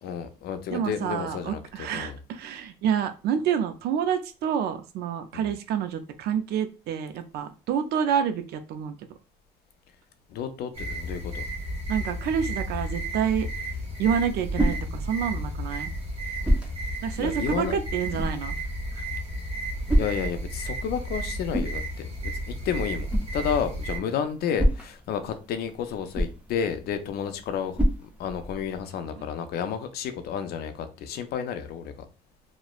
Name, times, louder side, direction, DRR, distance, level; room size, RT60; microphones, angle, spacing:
voice 1, 0.0-2.2 5.3-5.5 10.3-11.4 17.2-17.8 18.1-18.2 20.0-32.1, left 7 dB, 70° left, 0.4 m, -31 dB
voice 2, 0.7-9.0 11.9-13.5 14.0-15.9 17.0-18.6 19.0-19.1, right 8 dB, 75° right, 0.4 m, -28 dB
sound 1, 10.7-24.0, right 1 dB, 35° right, 1.0 m, -33 dB
sound 2, 13.9-28.8, equal, 10° right, 0.4 m, -31 dB
3.0 x 2.0 x 2.3 m
cardioid pair, 110°, 17 cm